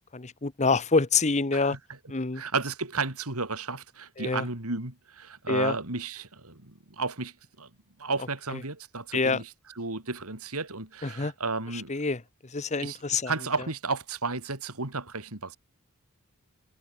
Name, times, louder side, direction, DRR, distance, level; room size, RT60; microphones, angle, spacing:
voice 1, 0.1-1.8 2.1-2.4 4.2-4.5 5.5-5.8 9.1-9.4 11.0-11.3 11.7-13.3, left 4 dB, 30° left, 1.0 m, -26 dB
voice 2, 2.3-7.7 8.0-9.5 9.8-11.9 12.8-15.6, right 3 dB, 80° right, 3.6 m, -33 dB
head